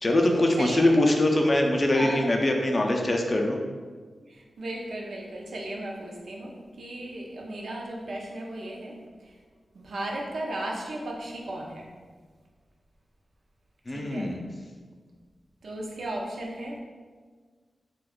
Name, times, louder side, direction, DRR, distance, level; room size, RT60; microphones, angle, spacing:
voice 1, 0.0-3.6 13.9-14.4, left 1 dB, 35° left, 1 dB, 0.4 m, -23 dB
voice 2, 0.6-1.1 1.9-2.3 4.2-9.3 9.7-11.9 13.9-14.3 15.6-16.8, right 1 dB, 75° right, -1 dB, 0.5 m, -35 dB
2.4 x 2.2 x 3.5 m, 1.5 s
wide cardioid pair, 80°, 0 cm